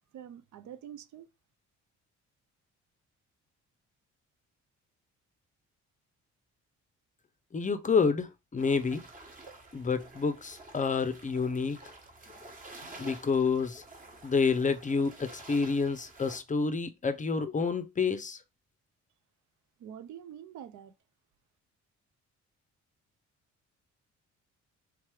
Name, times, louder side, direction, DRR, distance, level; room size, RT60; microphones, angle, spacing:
voice 1, 0.1-1.3 19.8-20.9, right 9 dB, 70° right, 0.6 m, -46 dB
voice 2, 7.5-9.0 9.7-11.8 13.0-13.8 14.2-18.4, left 5 dB, 25° left, 0.5 m, -28 dB
sound 1, 8.6-16.4, right 2 dB, 30° right, 1.2 m, -50 dB
3.5 x 3.2 x 3.3 m
cardioid pair, 90°, 30 cm